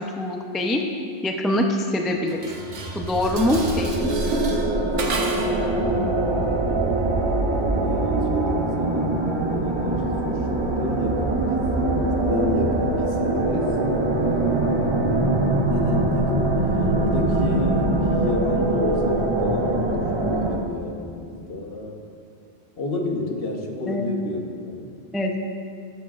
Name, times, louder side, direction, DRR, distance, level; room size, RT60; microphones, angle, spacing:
voice 1, 0.2-0.8 1.2-2.4 2.9-4.2 23.9-24.1 25.1-25.5, left 1 dB, ahead, 2 dB, 0.3 m, -23 dB
Dishes pots and pans, 2.3-5.7, right 2 dB, 80° right, 1.3 m, -30 dB
sound 1, 2.5-20.6, right 2 dB, 30° right, 0.7 m, -23 dB
voice 2, 5.7-6.5 7.7-9.2 9.5-11.5 11.8-13.7 15.7-22.0 22.8-24.9, left 2 dB, 55° left, 1 dB, 1.2 m, -30 dB
13.5 x 10.5 x 2.4 m, 2.4 s
omnidirectional pair, 1.2 m